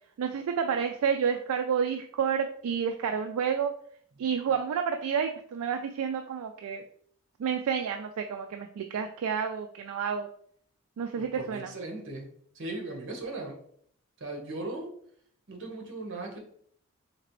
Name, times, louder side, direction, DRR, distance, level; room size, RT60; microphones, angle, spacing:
voice 1, 0.2-3.7 4.2-6.8 7.4-10.3 11.0-11.7, right 7 dB, 75° right, 5 dB, 0.3 m, -30 dB
voice 2, 11.2-12.3 12.5-13.6 14.2-15.0 15.5-16.4, right 2 dB, 60° right, 2 dB, 0.9 m, -38 dB
3.9 x 2.9 x 3.0 m, 0.62 s
head